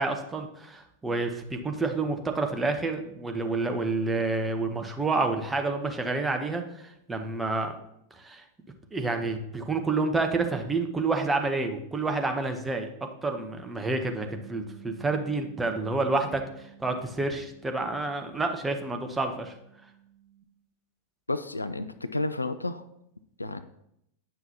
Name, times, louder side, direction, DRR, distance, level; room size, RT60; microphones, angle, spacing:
voice 1, 0.0-7.7 8.1-8.4 8.9-12.9 13.2-19.5, right 3 dB, 10° right, 4 dB, 0.8 m, -29 dB
Bass guitar, 14.2-20.4, right 11 dB, 55° right, 2.5 m, -52 dB
voice 2, 21.3-22.9 23.4-23.6, left 2 dB, 80° left, 11 dB, 0.3 m, -31 dB
9.0 x 5.8 x 2.8 m, 0.78 s
figure-of-eight pair, 90°, 0 cm